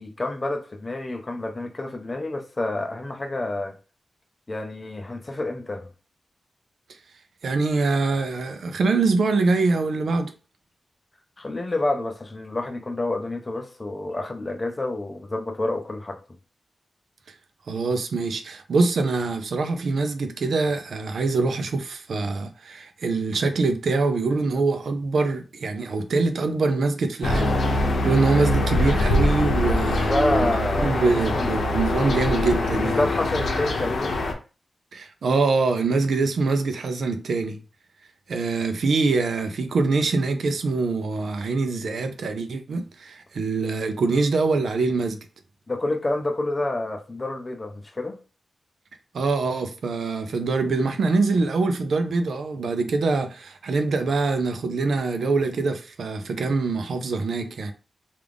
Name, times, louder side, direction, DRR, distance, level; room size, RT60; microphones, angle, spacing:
voice 1, 0.0-3.8 4.5-5.9 11.4-16.2 29.8-31.5 32.8-34.2 45.7-48.2, left 2 dB, 30° left, 0.5 m, -28 dB
voice 2, 7.4-10.3 17.7-33.0 34.9-37.6 38.3-45.2 49.1-57.7, right 3 dB, 85° right, 0.5 m, -24 dB
sound 1, 27.2-34.3, left 2 dB, 80° left, 0.7 m, -23 dB
3.5 x 2.5 x 3.4 m
wide cardioid pair, 110°, 0 cm